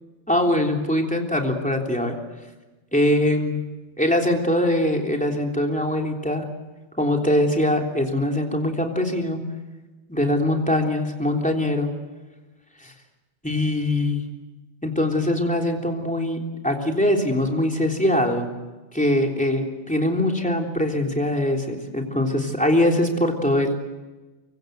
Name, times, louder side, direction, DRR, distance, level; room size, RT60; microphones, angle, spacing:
voice 1, 0.3-2.2 2.9-3.6 4.0-6.5 7.0-9.4 10.1-11.9 12.8-12.9 13.4-14.2 14.8-18.5 18.9-23.7, left 1 dB, 5° left, 1 dB, 3.5 m, -22 dB
24.5 x 23.5 x 8.0 m, 1.2 s
omnidirectional pair, 1.2 m